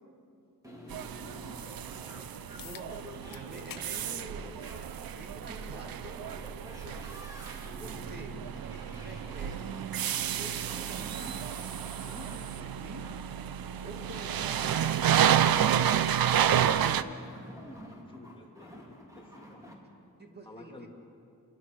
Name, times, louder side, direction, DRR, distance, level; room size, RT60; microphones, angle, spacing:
sound 1, 0.6-19.7, equal, 10° right, 3.4 m, -48 dB
voice 1, 0.8-1.1 6.8-7.1 17.9-19.6 20.4-20.9, left 2 dB, 15° left, -1 dB, 3.0 m, -53 dB
sound 2, 0.9-17.0, right 9 dB, 80° right, 0.7 m, -30 dB
sound 3, 2.6-2.9 3.3-3.9 4.3-4.4 5.5-5.6 10.5-10.6, left 11 dB, 70° left, 0.7 m, -47 dB
voice 2, 2.6-4.6 4.9-6.0 7.7-8.4 9.0-9.7 10.4-11.5 12.0-13.2 13.8-15.9 20.2-20.9, right 1 dB, 30° right, 3 dB, 2.4 m, -48 dB
28.0 x 23.0 x 6.4 m, 2.5 s
wide cardioid pair, 175°, 35 cm